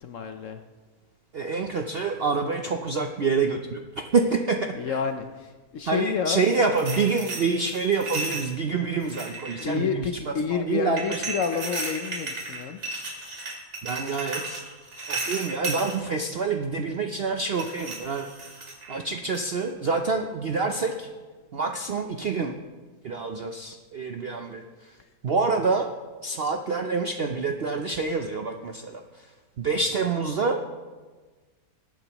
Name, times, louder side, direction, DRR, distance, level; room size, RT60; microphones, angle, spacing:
voice 1, 0.0-0.6 4.8-6.4 9.6-12.8, left 6 dB, 65° left, 7 dB, 0.8 m, -29 dB
voice 2, 1.3-3.8 4.1-5.0 5.9-11.2 13.8-14.6 15.1-18.3 18.9-21.1 21.5-22.6 23.0-24.6 25.2-25.9 26.2-29.0 29.6-30.6, right 4 dB, 65° right, 4 dB, 0.6 m, -27 dB
sound 1, 6.5-8.5 9.0-9.8 11.0-15.9 17.5-19.0 19.3-19.6, right 3 dB, 40° right, 2.5 m, -34 dB
20.5 x 9.0 x 3.0 m, 1.4 s
omnidirectional pair, 1.8 m